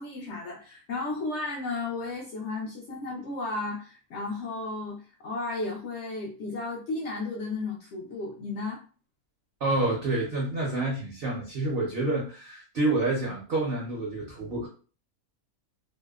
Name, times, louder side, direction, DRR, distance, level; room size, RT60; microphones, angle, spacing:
voice 1, 0.0-8.8, left 3 dB, 70° left, -1 dB, 0.7 m, -34 dB
voice 2, 9.6-14.7, right 2 dB, 55° right, -2 dB, 0.6 m, -28 dB
2.7 x 2.0 x 2.3 m, 0.38 s
omnidirectional pair, 1.6 m